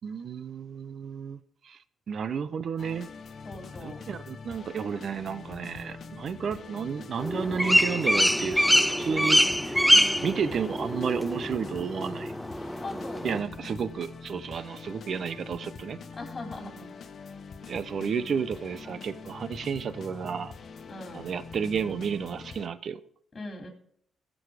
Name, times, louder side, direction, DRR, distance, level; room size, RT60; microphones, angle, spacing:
voice 1, 0.0-1.4 1.6-1.8 2.1-3.1 3.8-9.9 10.2-12.3 13.2-16.0 17.7-20.5 21.1-23.0, right 6 dB, 55° right, 0.7 m, -32 dB
sound 1, 2.8-22.7, left 5 dB, 50° left, 1.0 m, -44 dB
voice 2, 3.4-4.0 9.9-10.6 12.8-13.5 16.1-16.9 20.9-21.2 23.3-23.7, left 2 dB, 30° left, 3.0 m, -40 dB
sound 2, 7.2-13.4, equal, ahead, 0.3 m, -24 dB
15.0 x 6.3 x 4.9 m
cardioid pair, 90°, 0 cm